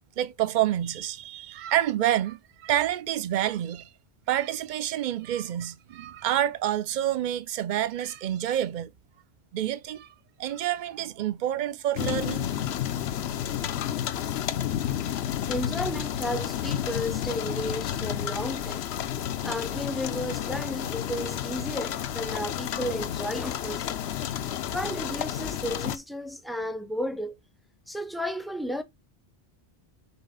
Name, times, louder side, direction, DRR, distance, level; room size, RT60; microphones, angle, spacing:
voice 1, 0.2-3.9 4.3-8.9 9.5-10.1 10.4-12.5, right 12 dB, 55° right, 0.6 m, -28 dB
sound 1, 12.0-26.0, left 10 dB, 80° left, 0.9 m, -31 dB
voice 2, 15.5-18.8 19.4-23.9 24.7-27.3 27.9-28.8, equal, ahead, 0.6 m, -33 dB
6.0 x 4.0 x 5.2 m
omnidirectional pair, 1.1 m